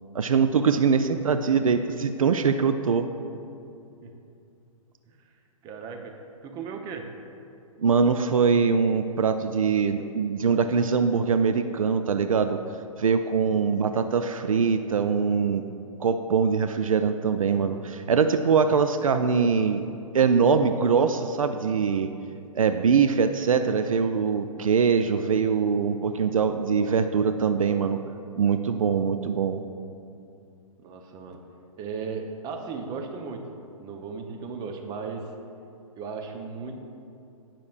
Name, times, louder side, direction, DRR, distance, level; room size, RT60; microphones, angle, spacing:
voice 1, 0.1-3.1 7.8-12.6 13.0-15.6 16.0-19.8 20.1-22.1 22.5-28.0 28.3-29.6, right 6 dB, 70° right, 8 dB, 0.5 m, -23 dB
voice 2, 5.6-6.2 6.4-7.1 30.8-31.4 31.8-33.5 33.8-35.3 36.0-36.8, right 5 dB, 20° right, 4 dB, 0.8 m, -36 dB
17.5 x 5.9 x 2.5 m, 2.6 s
figure-of-eight pair, 120°, 18 cm